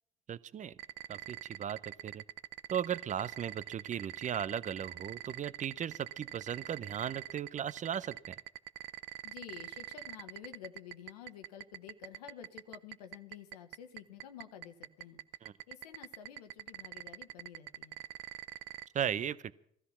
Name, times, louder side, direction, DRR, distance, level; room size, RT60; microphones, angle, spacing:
voice 1, 0.3-0.7 1.1-2.2 2.7-8.3 15.4-15.5 18.9-19.5, right 9 dB, 40° right, 17 dB, 0.7 m, -37 dB
sound 1, 0.8-18.9, right 17 dB, 75° right, 0.6 m, -43 dB
voice 2, 9.2-15.2 15.7-18.0, left 9 dB, 90° left, 8 dB, 1.2 m, -50 dB
16.5 x 13.0 x 5.7 m, 0.67 s
hypercardioid pair, 70°, 20 cm